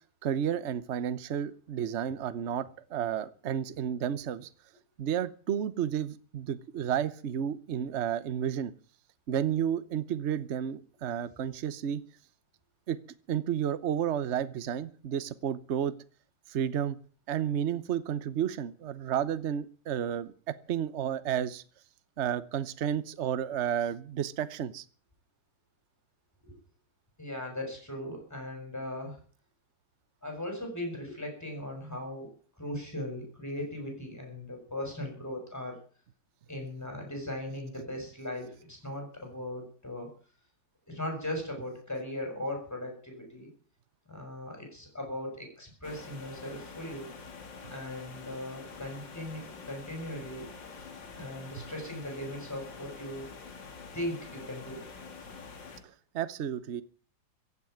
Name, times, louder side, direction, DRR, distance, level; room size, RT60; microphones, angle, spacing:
voice 1, 0.2-4.5 5.0-8.7 9.3-12.0 12.9-13.0 13.3-15.9 16.5-17.0 17.3-21.6 22.2-24.8 47.6-47.7 51.6-51.7 55.8-56.8, right 9 dB, 50° right, 14 dB, 1.0 m, -32 dB
voice 2, 27.2-29.2 30.2-35.8 36.5-40.1 40.9-43.5 44.1-47.1 47.7-50.5 51.1-53.3 53.9-54.8, left 1 dB, 10° left, 2 dB, 6.5 m, -38 dB
sound 1, 45.8-55.8, left 5 dB, 70° left, 2.8 m, -46 dB
15.5 x 8.2 x 9.3 m, 0.42 s
omnidirectional pair, 2.0 m